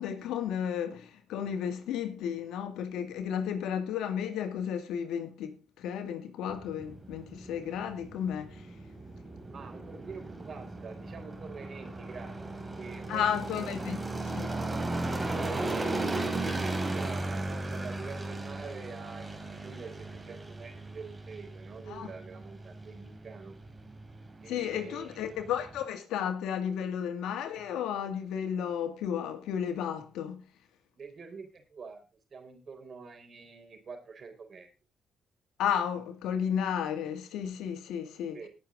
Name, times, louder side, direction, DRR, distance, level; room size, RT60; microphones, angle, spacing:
voice 1, 0.0-8.7 13.1-14.0 14.3-14.5 21.9-22.1 24.5-30.5 35.6-38.4, left 8 dB, 85° left, 2.2 m, -33 dB
sound 1, 6.5-25.8, right 2 dB, 20° right, 3.3 m, -37 dB
voice 2, 9.5-14.0 15.3-23.5 24.4-25.3 31.0-32.0 32.3-34.7 38.3-38.5, right 5 dB, 45° right, 4.3 m, -46 dB
19.5 x 7.1 x 3.8 m
cardioid pair, 90°, 0 cm